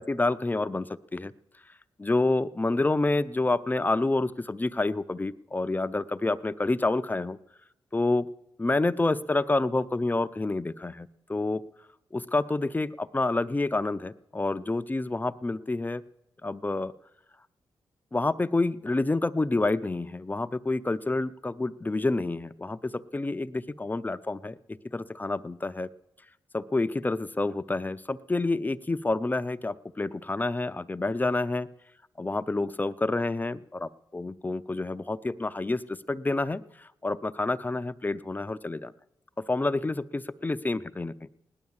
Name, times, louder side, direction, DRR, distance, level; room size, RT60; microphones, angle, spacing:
voice 1, 0.0-1.3 2.0-7.4 7.9-8.3 8.6-11.6 12.1-16.0 16.4-16.9 18.1-25.9 26.5-31.7 32.2-38.9 39.4-41.3, left 2 dB, 20° left, 13 dB, 0.5 m, -28 dB
17.0 x 10.5 x 7.3 m, 0.87 s
cardioid pair, 65°, 9 cm